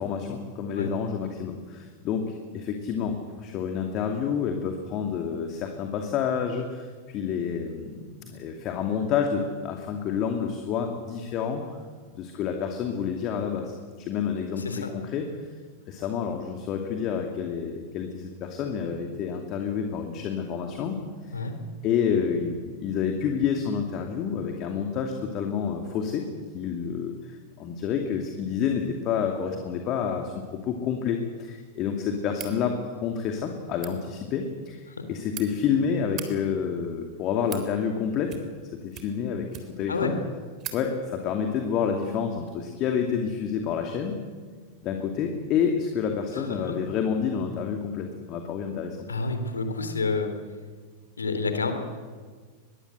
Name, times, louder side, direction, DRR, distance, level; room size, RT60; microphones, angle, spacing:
voice 1, 0.0-11.8 12.1-15.3 15.9-21.0 21.8-26.3 26.5-38.4 38.7-40.2 40.7-44.2 44.8-49.0, left 7 dB, 35° left, 4 dB, 2.6 m, -29 dB
voice 2, 14.6-14.9 21.3-21.5 39.9-40.1 46.3-46.6 49.1-50.3 51.2-51.7, left 4 dB, 75° left, 7 dB, 3.4 m, -28 dB
sound 1, 32.3-32.6 33.7-33.9 34.9-35.5 36.0-36.3 37.1-37.7 38.2-38.6 38.9-39.9 40.2-40.3 40.6-40.8, right 10 dB, 35° right, 3.6 m, -40 dB
23.5 x 22.0 x 8.0 m, 1.5 s
figure-of-eight pair, 90°, 0 cm